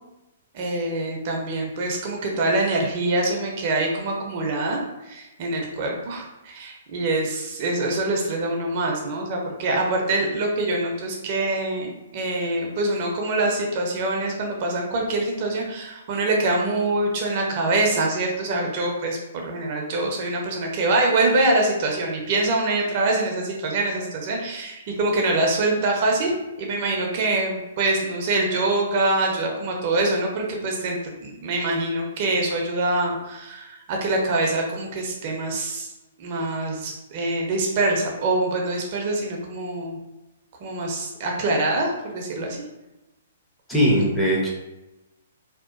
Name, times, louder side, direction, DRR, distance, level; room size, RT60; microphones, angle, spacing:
voice 1, 0.5-26.3 26.6-35.9 36.2-40.0 40.6-42.6 44.0-44.1, right 2 dB, 45° right, 0 dB, 0.5 m, -24 dB
voice 2, 43.7-44.5, equal, 5° left, -6 dB, 0.7 m, -20 dB
2.8 x 2.1 x 2.5 m, 1.0 s
hypercardioid pair, 130°, 0 cm